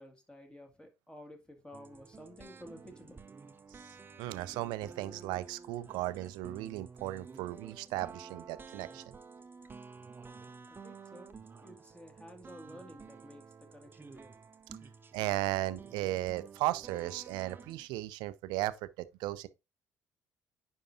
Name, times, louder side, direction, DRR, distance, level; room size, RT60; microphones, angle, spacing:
voice 1, 0.0-3.2 10.7-11.3 11.6-14.5, equal, 10° left, 2.0 m, -52 dB
sound 1, 1.7-17.9, right 5 dB, 25° right, 0.7 m, -51 dB
voice 2, 4.2-9.0 15.1-19.5, right 16 dB, 65° right, 0.5 m, -36 dB
9.9 x 4.5 x 2.6 m
figure-of-eight pair, 50°, 8 cm